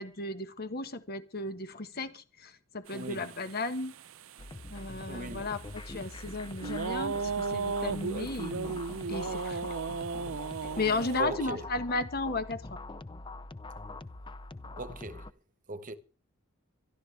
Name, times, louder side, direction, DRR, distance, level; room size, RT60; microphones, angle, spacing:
voice 1, 0.0-3.9 4.7-8.8 9.1-9.7 10.8-12.8, left 3 dB, 50° left, 1.4 m, -34 dB
voice 2, 2.9-3.3 5.1-5.4 11.2-11.6 14.8-15.2 15.7-15.9, right 2 dB, 40° right, 1.1 m, -38 dB
sound 1, 2.9-11.2, right 4 dB, 85° right, 0.6 m, -36 dB
sound 2, 4.4-15.3, left 2 dB, 25° left, 0.7 m, -44 dB
25.0 x 12.5 x 3.4 m
head